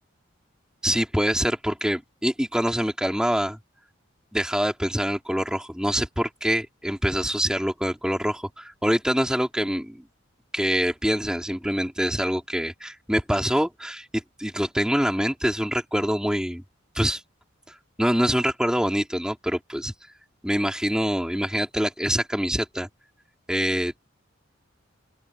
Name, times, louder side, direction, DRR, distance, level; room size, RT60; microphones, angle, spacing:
voice 1, 0.8-3.6 4.3-10.0 10.5-16.6 16.9-17.2 18.0-19.9 20.4-22.9 23.5-24.0, equal, 5° right, 3.4 m, -25 dB
open air
head